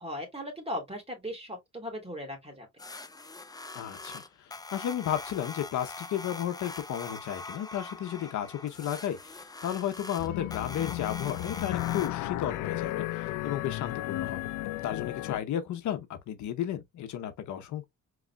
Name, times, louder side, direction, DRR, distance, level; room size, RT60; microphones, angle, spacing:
voice 1, 0.0-2.7, equal, 20° right, 2.8 m, -38 dB
sound 1, 2.8-12.1, left 3 dB, 15° left, 0.6 m, -43 dB
voice 2, 3.7-14.5 14.8-17.8, left 10 dB, 75° left, 0.9 m, -33 dB
sound 2, 10.2-15.4, left 16 dB, 90° left, 0.5 m, -34 dB
4.8 x 4.0 x 2.3 m
cardioid pair, 90°, 30 cm